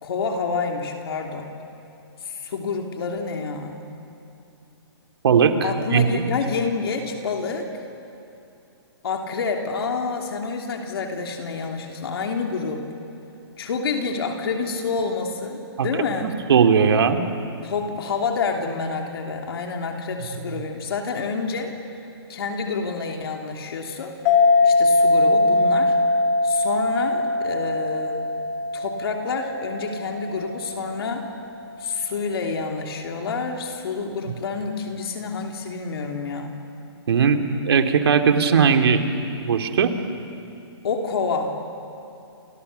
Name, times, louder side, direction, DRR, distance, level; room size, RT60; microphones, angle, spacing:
voice 1, 0.0-1.5 2.2-3.8 5.6-7.8 9.0-12.9 13.6-16.3 17.6-21.7 22.3-24.1 24.6-26.0 26.4-28.3 28.7-31.2 31.8-36.6 40.8-41.5, left 4 dB, 65° left, 2 dB, 3.1 m, -28 dB
voice 2, 5.2-6.2 15.8-15.9 16.2-17.2 37.1-39.0 39.4-39.9, right 6 dB, 65° right, 6 dB, 2.6 m, -18 dB
sound 1, 24.3-31.3, left 2 dB, 25° left, 2.2 m, -21 dB
30.0 x 28.5 x 6.9 m, 2.7 s
hypercardioid pair, 155°, 14 cm